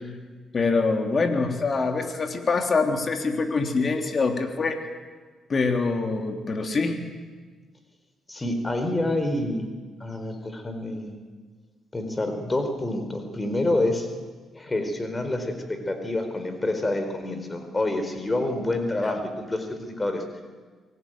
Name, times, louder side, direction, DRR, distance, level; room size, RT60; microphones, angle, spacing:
voice 1, 0.5-4.9 5.5-7.0 19.0-19.2, left 4 dB, 45° left, 5 dB, 3.4 m, -25 dB
voice 2, 8.3-9.7 10.0-11.1 11.9-14.1 14.5-20.2, left 1 dB, 25° left, 7 dB, 4.4 m, -27 dB
24.0 x 18.0 x 9.2 m, 1.4 s
supercardioid pair, 65°, 0 cm